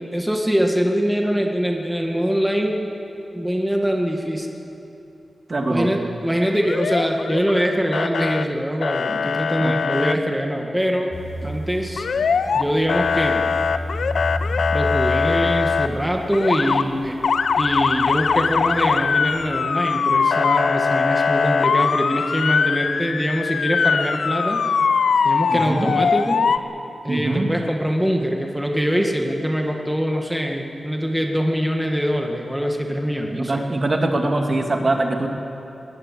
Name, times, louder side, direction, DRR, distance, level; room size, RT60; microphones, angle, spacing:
voice 1, 0.1-2.8 3.3-4.5 5.7-11.1 11.4-12.1 12.5-13.4 14.7-17.1 17.6-24.6 25.2-26.5 27.0-33.6, equal, 5° right, 1 dB, 1.7 m, -23 dB
voice 2, 5.5-5.9 9.1-9.2 9.6-9.7 25.5-25.9 27.1-27.5 33.3-35.3, right 2 dB, 40° right, 3 dB, 2.2 m, -22 dB
Motor vehicle (road) / Siren, 6.6-7.6 7.9-8.4 8.8-10.1 12.0-12.6 12.9-15.9 16.3-16.8 17.2-26.6, left 5 dB, 85° left, 0.7 m, -21 dB
sound 1, 11.1-19.5, left 1 dB, 40° left, 4.5 m, -32 dB
20.0 x 19.0 x 8.4 m, 2.9 s
wide cardioid pair, 100°, 0 cm